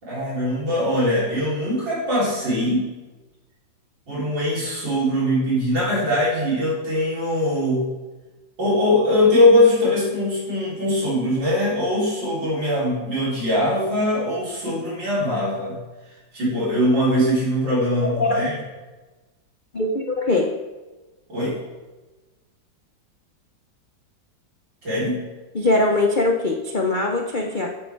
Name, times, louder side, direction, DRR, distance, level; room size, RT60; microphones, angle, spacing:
voice 1, 0.0-2.9 4.1-7.9 8.6-15.8 16.3-18.5 21.3-21.6 24.8-25.2, left 1 dB, 70° right, -7 dB, 4.7 m, -21 dB
voice 2, 18.0-18.5 19.7-20.5 25.5-27.7, left 2 dB, 85° left, 1 dB, 0.4 m, -21 dB
8.9 x 8.1 x 4.5 m, 1.2 s
omnidirectional pair, 2.1 m